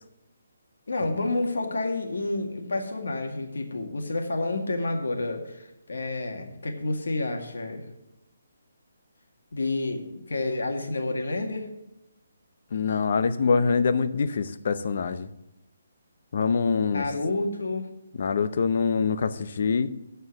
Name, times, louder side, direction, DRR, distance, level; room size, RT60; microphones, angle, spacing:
voice 1, 0.9-7.8 9.5-11.7 16.9-17.9, left 2 dB, 90° left, 4 dB, 2.0 m, -29 dB
voice 2, 12.7-15.3 16.3-17.0 18.2-19.9, left 5 dB, 45° left, 12 dB, 0.6 m, -24 dB
13.0 x 4.5 x 7.2 m, 0.91 s
hypercardioid pair, 175°, 0 cm